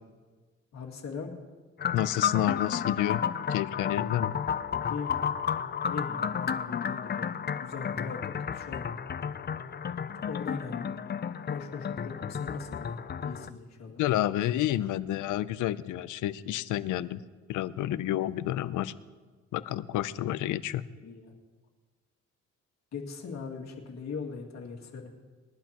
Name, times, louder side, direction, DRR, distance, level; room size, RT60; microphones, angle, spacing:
voice 1, 0.7-1.3 4.8-5.1 5.9-8.9 10.3-10.9 11.4-14.0 21.0-21.3 22.9-25.1, left 5 dB, 60° left, 1 dB, 2.4 m, -40 dB
sound 1, 1.8-13.5, left 7 dB, 35° left, 0.6 m, -32 dB
voice 2, 1.9-3.2 3.5-4.3 14.0-17.2 17.5-18.9 19.5-20.8, left 13 dB, 80° left, 16 dB, 0.6 m, -29 dB
21.5 x 11.5 x 3.0 m, 1.4 s
cardioid pair, 90°, 30 cm